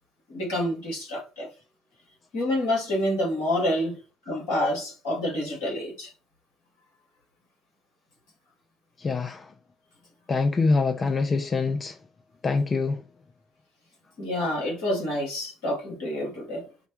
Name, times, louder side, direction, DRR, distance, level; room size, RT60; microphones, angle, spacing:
voice 1, 0.3-1.5 2.3-4.0 4.2-6.1 14.2-16.7, left 1 dB, 75° left, 1.8 m, -28 dB
voice 2, 9.0-9.5 10.3-12.0 12.4-13.0, left 3 dB, 40° left, 0.4 m, -25 dB
4.9 x 2.2 x 3.0 m
figure-of-eight pair, 45°, 0 cm